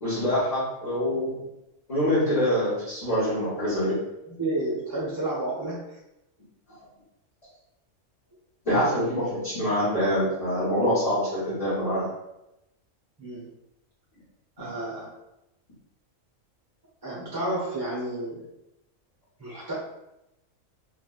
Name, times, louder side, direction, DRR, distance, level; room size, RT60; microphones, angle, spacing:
voice 1, 0.0-1.4 1.9-3.9 8.6-12.1, equal, 30° left, -12 dB, 1.2 m, -25 dB
voice 2, 4.2-6.0 13.2-13.5 14.6-15.1 17.0-18.4 19.4-19.7, right 1 dB, 20° right, -6 dB, 0.7 m, -31 dB
3.3 x 3.0 x 2.4 m, 0.88 s
omnidirectional pair, 1.4 m